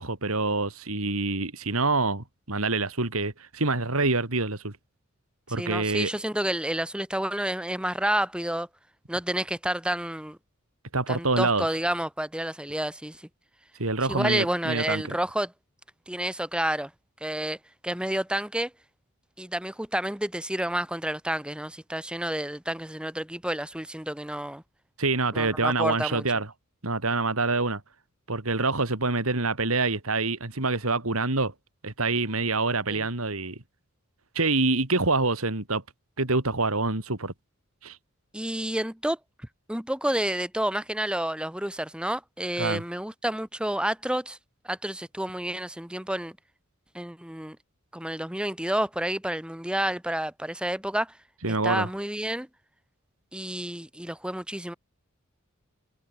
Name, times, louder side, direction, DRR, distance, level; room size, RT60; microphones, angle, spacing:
voice 1, 0.0-4.7 5.5-6.1 10.9-11.7 13.8-15.0 25.0-26.5 26.8-27.8 28.3-31.5 31.8-33.6 34.3-35.8 36.2-37.3 37.8-38.0 42.6-42.8 51.4-51.9, right 3 dB, 75° right, 3.3 m, -26 dB
voice 2, 5.6-8.7 9.1-10.4 11.1-13.3 14.1-15.5 16.1-16.9 17.2-17.6 17.8-18.7 19.4-24.6 25.3-26.4 32.9-33.1 38.3-39.2 39.7-44.4 44.6-46.4 46.9-47.6 47.9-51.1 51.5-52.5 53.3-54.7, right 1 dB, 5° right, 1.5 m, -30 dB
head